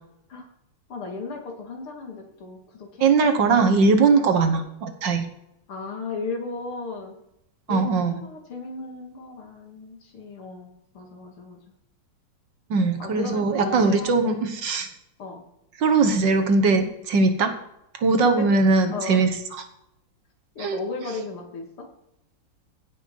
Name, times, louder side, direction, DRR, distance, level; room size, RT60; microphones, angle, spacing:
voice 1, 0.9-3.7 5.7-7.1 7.7-10.7 10.9-11.6 13.0-14.4 15.2-15.4 18.2-18.5 18.9-19.2 20.6-21.9, left 3 dB, 80° left, 2 dB, 3.1 m, -35 dB
voice 2, 3.0-5.3 7.7-8.2 12.7-14.9 15.8-17.5 17.9-19.6 20.6-20.8, right 4 dB, 60° right, 7 dB, 1.7 m, -20 dB
16.5 x 6.3 x 5.4 m, 0.82 s
omnidirectional pair, 2.4 m